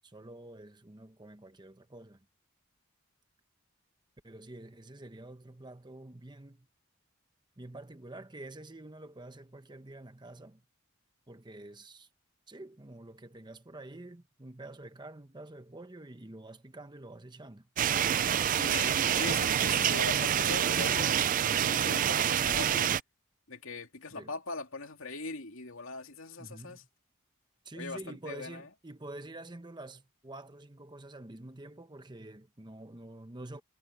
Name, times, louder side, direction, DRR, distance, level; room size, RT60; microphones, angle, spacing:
voice 1, 0.0-2.3 4.2-6.7 7.6-10.6 11.3-12.1 12.5-17.7 24.1-24.3 26.4-26.9 27.6-33.6, right 2 dB, 20° right, 1.0 m, -47 dB
sound 1, 17.8-23.0, right 9 dB, 40° right, 0.3 m, -27 dB
voice 2, 18.5-22.9 23.5-26.8 27.7-28.7, left 3 dB, 65° left, 2.7 m, -41 dB
head